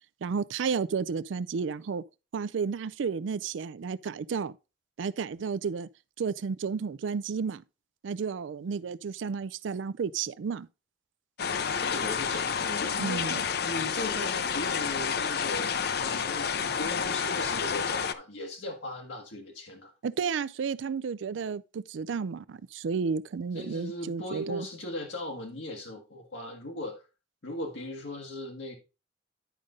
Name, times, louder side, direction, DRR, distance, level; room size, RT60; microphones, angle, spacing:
voice 1, 0.2-2.0 2.3-4.6 5.0-5.9 6.2-7.6 8.0-10.7 13.0-13.4 20.0-24.7, right 5 dB, 80° right, 0.4 m, -32 dB
voice 2, 11.4-13.2 13.6-19.9 23.5-27.0 27.4-28.8, left 1 dB, 80° left, 1.4 m, -38 dB
sound 1, 11.4-18.1, left 6 dB, 55° left, 0.6 m, -30 dB
10.5 x 5.3 x 3.7 m
head